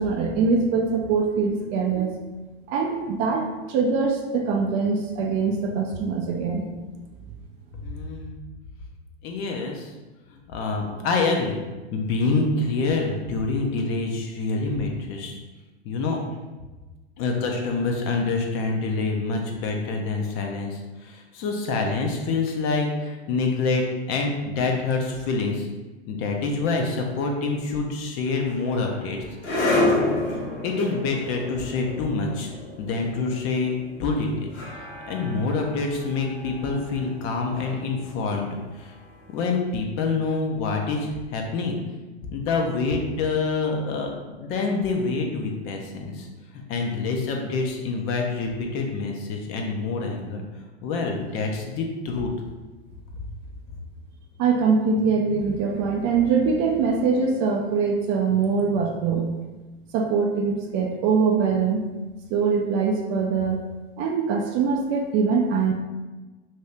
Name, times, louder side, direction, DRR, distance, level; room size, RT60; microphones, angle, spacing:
voice 1, 0.0-2.1 2.7-6.6 54.4-59.3 59.9-61.8 62.3-63.6 64.0-65.7, right 5 dB, 35° right, 1 dB, 0.4 m, -23 dB
voice 2, 7.8-8.3 9.2-9.9 10.5-11.6 11.9-15.4 15.8-16.2 17.2-25.7 26.1-29.2 30.6-32.5 32.8-34.5 35.1-38.9 39.3-41.8 42.3-46.3 46.5-50.4 50.8-52.3, left 3 dB, 40° left, 2 dB, 0.6 m, -26 dB
sound 1, 28.3-39.4, left 2 dB, 85° left, 1.1 m, -30 dB
2.7 x 2.7 x 3.3 m, 1.2 s
hypercardioid pair, 105°, 33 cm